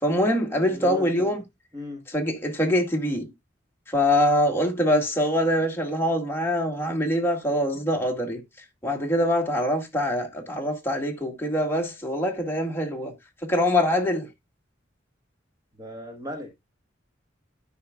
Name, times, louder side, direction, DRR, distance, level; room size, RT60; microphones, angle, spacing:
voice 1, 0.0-1.4 2.1-3.3 3.9-8.4 8.8-13.1 13.4-14.3, left 1 dB, 15° left, 1.8 m, -24 dB
voice 2, 0.6-1.4 1.7-2.0 15.7-16.5, left 1 dB, 20° right, 1.4 m, -37 dB
13.0 x 5.7 x 2.3 m
head